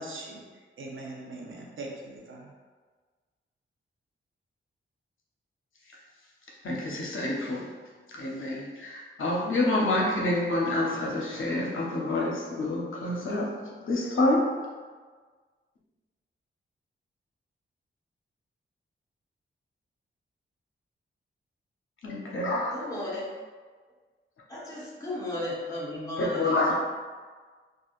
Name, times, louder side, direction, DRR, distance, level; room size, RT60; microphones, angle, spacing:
voice 1, 0.0-2.5, right 2 dB, 75° right, -1 dB, 0.6 m, -41 dB
voice 2, 6.6-7.7 8.1-13.5 13.8-14.5 22.0-22.7 26.2-26.7, left 2 dB, 75° left, -3 dB, 0.7 m, -27 dB
voice 3, 22.7-23.3 24.5-26.7, left 1 dB, 15° left, -7 dB, 1.0 m, -35 dB
3.5 x 2.4 x 2.4 m, 1.5 s
wide cardioid pair, 105°, 21 cm